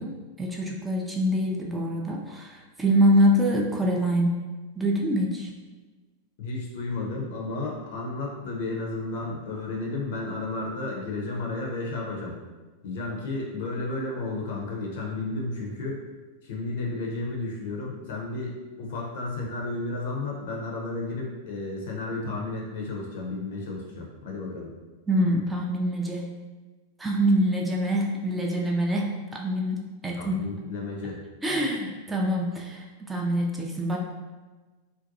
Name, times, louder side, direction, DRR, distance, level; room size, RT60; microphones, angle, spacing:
voice 1, 0.0-4.4 4.8-5.5 25.1-26.3 27.0-30.4 31.4-34.0, equal, 10° right, -1 dB, 0.3 m, -25 dB
voice 2, 6.4-12.4 12.8-16.0 16.4-24.7 30.1-31.2, left 2 dB, 55° left, -2 dB, 0.6 m, -32 dB
2.5 x 2.2 x 2.6 m, 1.3 s
figure-of-eight pair, 90°, 0 cm